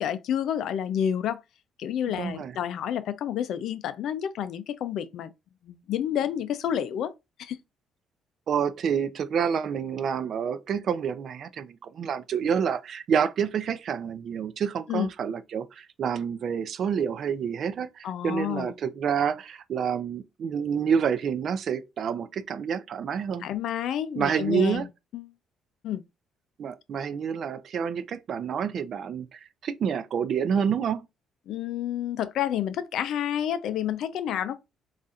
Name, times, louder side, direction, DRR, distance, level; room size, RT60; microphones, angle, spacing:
voice 1, 0.0-1.4 1.8-5.3 5.6-7.1 7.4-7.6 14.9-15.1 18.0-18.7 23.4-24.9 25.1-25.3 25.8-26.0 31.5-34.6, left 10 dB, 70° left, 0.4 m, -29 dB
voice 2, 2.2-2.6 8.5-23.5 24.2-24.9 26.6-31.0, right 7 dB, 55° right, 0.4 m, -28 dB
4.1 x 2.5 x 2.4 m
cardioid pair, 115°, 0 cm